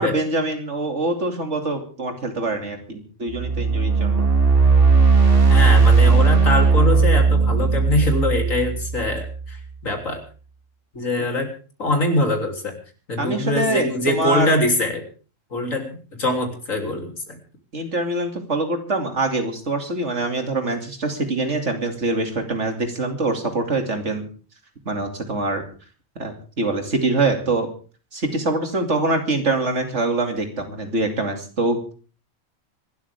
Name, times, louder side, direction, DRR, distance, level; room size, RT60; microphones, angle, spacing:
voice 1, 0.0-4.3 13.2-14.6 17.7-24.3 24.8-25.6 26.2-27.7 28.1-31.9, right 2 dB, 65° right, 5 dB, 2.9 m, -24 dB
sound 1, 3.3-9.5, right 4 dB, 45° right, 3.2 m, -17 dB
voice 2, 5.5-10.2 10.9-11.5 11.8-12.8 13.1-15.0 15.5-17.4, left 1 dB, 90° left, 3 dB, 3.8 m, -23 dB
25.0 x 12.5 x 3.6 m, 0.38 s
omnidirectional pair, 1.3 m